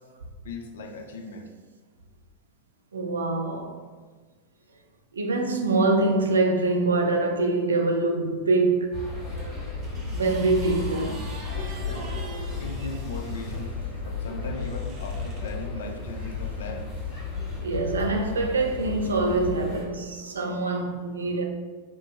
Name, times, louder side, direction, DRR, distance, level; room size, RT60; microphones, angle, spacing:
voice 1, 0.4-1.5 11.9-12.1 12.6-13.8 14.0-16.9, left 3 dB, 65° left, 0.4 m, -38 dB
voice 2, 2.9-3.8 5.1-8.9 10.1-11.2 11.6-11.9 17.6-21.4, right 3 dB, 75° right, 0.4 m, -24 dB
sound 1, 8.9-19.9, left 4 dB, 25° left, 1.3 m, -33 dB
sound 2, 9.4-13.6 14.5-15.5 16.4-16.6, right 3 dB, 35° right, 0.6 m, -46 dB
3.0 x 2.0 x 3.1 m
figure-of-eight pair, 90°, 0 cm